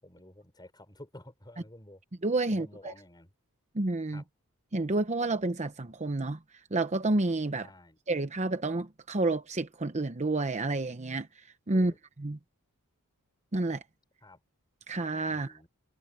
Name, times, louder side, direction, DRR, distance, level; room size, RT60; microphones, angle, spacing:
voice 1, 0.0-2.0 2.5-3.3 4.1-4.2 7.5-8.0 11.7-12.0 14.2-14.4 15.3-15.7, left 1 dB, 20° left, 5.7 m, -51 dB
voice 2, 2.2-2.9 3.7-4.2 4.7-6.4 6.7-7.7 8.1-11.3 11.7-11.9 12.2-12.4 13.5-13.8 14.9-15.5, right 2 dB, 30° right, 0.9 m, -29 dB
head